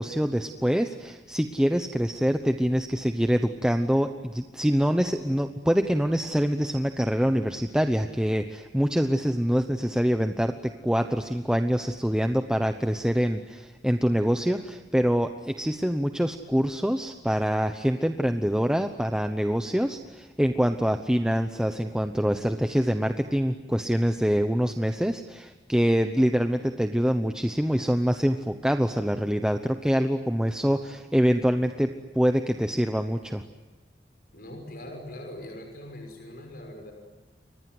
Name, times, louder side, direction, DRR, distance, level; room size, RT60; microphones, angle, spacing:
voice 1, 0.0-33.4, equal, 5° right, 6 dB, 0.9 m, -25 dB
voice 2, 34.3-36.9, left 1 dB, 55° left, 3 dB, 5.8 m, -41 dB
30.0 x 24.5 x 7.9 m, 1.2 s
head